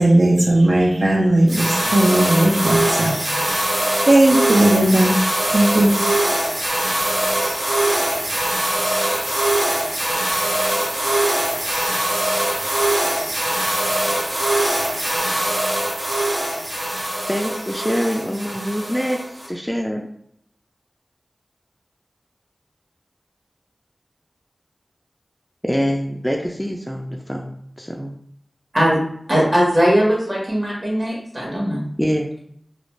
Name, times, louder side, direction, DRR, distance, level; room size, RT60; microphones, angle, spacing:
voice 1, 0.0-3.5 4.1-5.1 5.5-5.9, right 1 dB, 65° right, -2 dB, 0.4 m, -16 dB
sound 1, 1.5-19.5, right 1 dB, 80° right, 0.8 m, -22 dB
voice 2, 17.3-19.2 19.5-20.1 25.6-28.1 32.0-32.3, equal, ahead, 1 dB, 0.3 m, -24 dB
voice 3, 29.3-31.8, equal, 40° right, -4 dB, 1.1 m, -19 dB
2.4 x 2.2 x 3.1 m, 0.69 s
wide cardioid pair, 50°, 0 cm